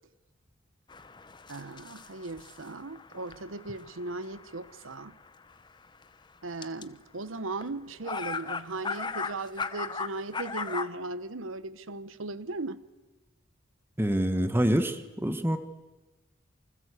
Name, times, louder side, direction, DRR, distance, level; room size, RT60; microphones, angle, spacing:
sound 1, 0.9-6.0 6.6-6.8 7.6-7.7 8.0-10.9, left 4 dB, 25° left, 0.9 m, -37 dB
voice 1, 1.5-5.1 6.4-12.8, right 2 dB, 90° right, 1.0 m, -37 dB
voice 2, 14.0-15.6, equal, 10° right, 1.3 m, -26 dB
27.5 x 25.0 x 8.3 m
head